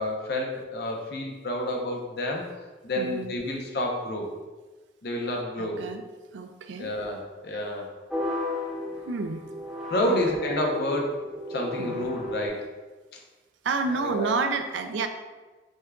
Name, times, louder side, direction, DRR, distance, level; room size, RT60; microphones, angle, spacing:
voice 1, 0.0-2.5 2.8-4.3 5.0-5.8 6.8-7.9 9.9-11.2 11.5-12.7 13.1-13.2 13.9-14.4, left 1 dB, 60° left, 1 dB, 0.6 m, -29 dB
voice 2, 3.0-3.3 5.6-6.0 6.3-6.9 9.0-9.5 10.0-10.2 11.8-12.1 13.6-15.1, right 4 dB, 85° right, 7 dB, 0.4 m, -30 dB
sound 1, 8.1-12.5, left 2 dB, 5° right, 0.6 m, -34 dB
6.3 x 2.4 x 2.3 m, 1.2 s
head